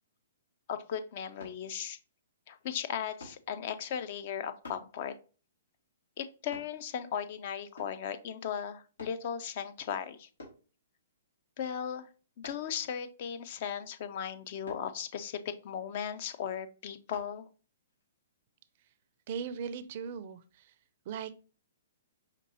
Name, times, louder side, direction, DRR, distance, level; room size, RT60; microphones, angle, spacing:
voice 1, 0.7-2.0 2.5-5.1 6.2-10.3 11.6-12.1 12.4-17.5, left 8 dB, 50° left, 11 dB, 0.5 m, -37 dB
sound 1, 1.4-1.6 3.2-3.4 4.6-4.9 6.5-6.7 7.8-8.0 9.0-9.2 10.4-10.6 12.4-12.7 14.6-14.9 17.1-17.3 17.9-18.0, left 2 dB, 85° left, 2.1 m, -48 dB
voice 2, 19.3-20.7 21.1-21.4, right 6 dB, 50° right, 13 dB, 0.4 m, -39 dB
5.1 x 2.7 x 2.7 m, 0.37 s
hypercardioid pair, 125°, 0 cm